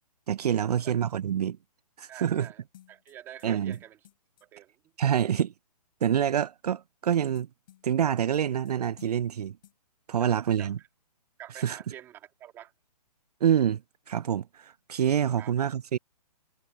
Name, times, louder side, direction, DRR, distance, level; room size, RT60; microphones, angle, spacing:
voice 1, 0.3-1.6 2.0-2.5 3.4-3.8 5.0-5.5 6.0-7.5 7.8-9.6 10.1-10.8 11.6-11.8 13.4-13.8 14.1-16.0, right 9 dB, 70° right, 0.4 m, -26 dB
voice 2, 2.1-4.0 4.4-4.7 10.2-10.9 11.4-12.7 15.4-15.5, right 11 dB, 10° right, 2.4 m, -47 dB
sound 1, 2.7-4.5 7.3-8.7 9.0-9.4 9.6-9.7, left 12 dB, 30° left, 6.0 m, -57 dB
hypercardioid pair, 175°, 20 cm